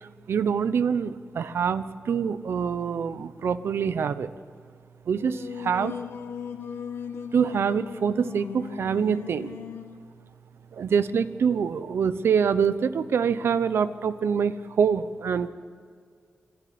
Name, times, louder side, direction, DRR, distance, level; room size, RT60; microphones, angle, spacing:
voice 1, 0.0-4.3 5.1-5.9 7.3-9.6 10.7-15.5, right 6 dB, 75° right, 13 dB, 1.0 m, -25 dB
Singing, 5.1-10.0, left 7 dB, 80° left, 1.5 m, -38 dB
26.5 x 11.5 x 8.5 m, 2.1 s
wide cardioid pair, 105°, 4 cm